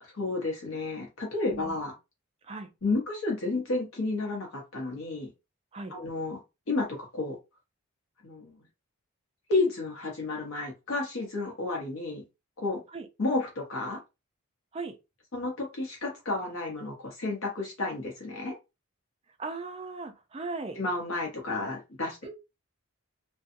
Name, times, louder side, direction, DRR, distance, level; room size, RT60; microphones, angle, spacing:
voice 1, 0.0-1.9 2.8-5.3 5.9-6.4 6.7-7.4 8.2-8.5 9.5-12.2 12.6-12.8 13.2-14.0 15.3-18.5 20.7-22.2, left 3 dB, 65° left, 0.8 m, -31 dB
voice 2, 19.4-20.8 22.2-22.3, right 3 dB, 25° right, 0.4 m, -38 dB
2.6 x 2.2 x 2.5 m
head